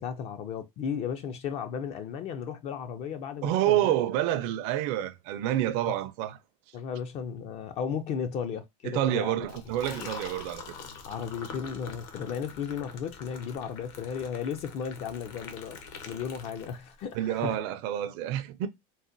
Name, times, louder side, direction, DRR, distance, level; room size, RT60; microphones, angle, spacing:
voice 1, 0.0-3.9 5.9-6.0 6.7-9.5 9.9-10.1 11.1-15.8 16.1-17.6, left 7 dB, 40° left, 0.4 m, -35 dB
voice 2, 3.4-6.4 8.8-10.6 17.1-18.7, right 12 dB, 60° right, 0.5 m, -28 dB
Liquid, 9.4-17.1, left 5 dB, 60° left, 0.8 m, -45 dB
3.9 x 2.1 x 2.5 m
supercardioid pair, 150°, 17 cm